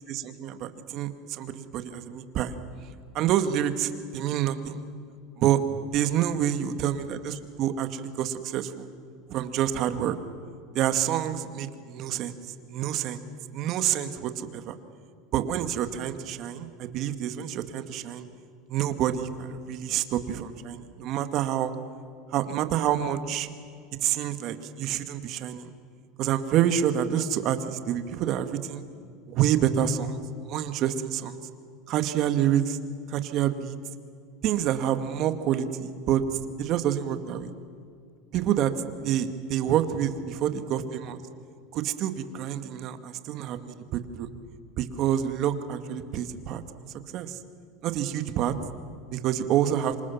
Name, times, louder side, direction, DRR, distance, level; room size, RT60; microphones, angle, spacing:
voice 1, 0.0-2.5 3.1-4.8 5.4-5.6 5.9-8.9 9.3-10.2 10.7-12.3 12.7-13.2 13.5-14.8 15.3-18.2 18.7-21.7 22.3-23.5 24.0-25.7 26.2-28.8 29.3-30.2 30.5-31.4 31.9-32.8 33.1-33.8 34.4-36.2 36.6-37.5 38.3-38.7 39.0-41.2 41.7-44.3 44.8-46.6 47.1-47.4 47.8-48.5 49.1-50.0, right 10 dB, 50° right, 9 dB, 2.1 m, -27 dB
27.0 x 26.0 x 7.3 m, 2.2 s
supercardioid pair, 115°, 0 cm